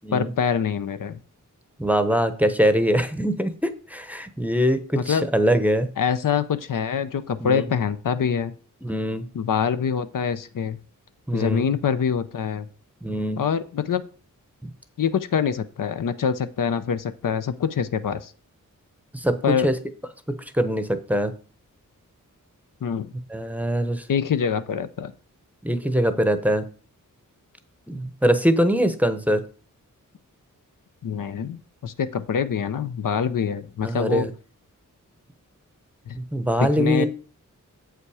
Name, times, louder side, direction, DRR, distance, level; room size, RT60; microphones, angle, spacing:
voice 1, 0.1-1.2 4.9-5.3 6.0-8.5 9.3-10.8 11.3-12.7 13.4-14.1 15.0-18.3 19.4-19.7 22.8-23.1 24.1-25.1 31.0-34.3 36.1-36.2 36.6-37.1, left 7 dB, 75° left, 11 dB, 0.6 m, -25 dB
voice 2, 1.8-5.9 7.4-7.6 8.8-9.2 11.3-11.7 13.0-13.4 19.1-19.3 19.6-19.7 20.5-21.3 23.3-24.0 25.6-26.6 27.9-29.4 33.8-34.3 36.1-37.1, equal, 5° right, 10 dB, 0.7 m, -22 dB
7.7 x 5.7 x 4.8 m, 0.38 s
wide cardioid pair, 115°, 33 cm